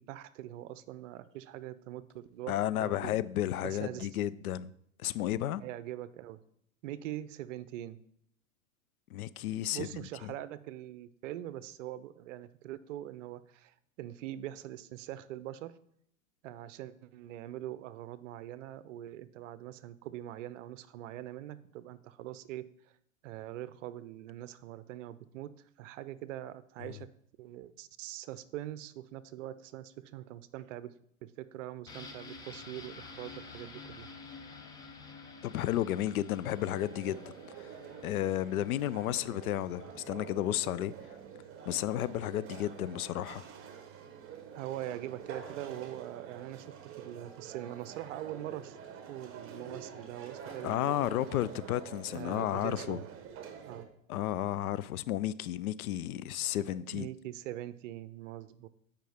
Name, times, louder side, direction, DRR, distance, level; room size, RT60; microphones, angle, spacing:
voice 1, 0.0-3.2 3.6-4.1 5.6-6.4 6.8-8.0 9.7-15.7 16.4-22.9 23.2-25.5 25.8-27.1 27.4-30.9 31.2-34.1 44.5-48.8 49.1-51.1 52.1-53.1 53.6-53.9 56.7-58.7, right 13 dB, 60° right, 0.6 m, -43 dB
voice 2, 2.5-4.7 5.0-5.6 9.1-10.3 26.8-27.0 35.4-37.2 37.6-37.7 38.0-40.9 41.7-43.4 50.6-53.0 54.1-57.1, left 13 dB, 85° left, 0.5 m, -33 dB
sound 1, 31.9-41.5 41.8-41.9, left 4 dB, 10° left, 0.3 m, -51 dB
sound 2, 36.4-53.8, right 7 dB, 30° right, 1.1 m, -47 dB
Bicycle, 50.0-52.9, left 6 dB, 30° left, 0.9 m, -63 dB
9.0 x 5.0 x 3.5 m
hypercardioid pair, 120°, 42 cm